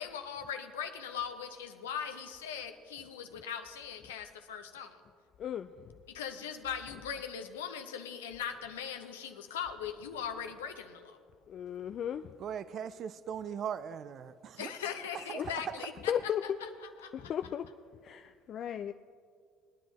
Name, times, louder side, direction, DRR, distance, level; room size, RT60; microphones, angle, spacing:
voice 1, 0.0-5.0 6.1-11.2 14.6-16.3 16.6-16.7 17.0-17.3, left 8 dB, 85° left, 0.8 m, -40 dB
voice 2, 5.4-5.9 11.5-12.3 15.4-15.5 16.1-16.4 17.1-17.7 18.0-18.9, left 9 dB, 50° left, 0.3 m, -35 dB
voice 3, 12.4-14.7 15.1-15.9, right 8 dB, 50° right, 0.4 m, -39 dB
20.5 x 10.0 x 3.0 m
hypercardioid pair, 65°, 0 cm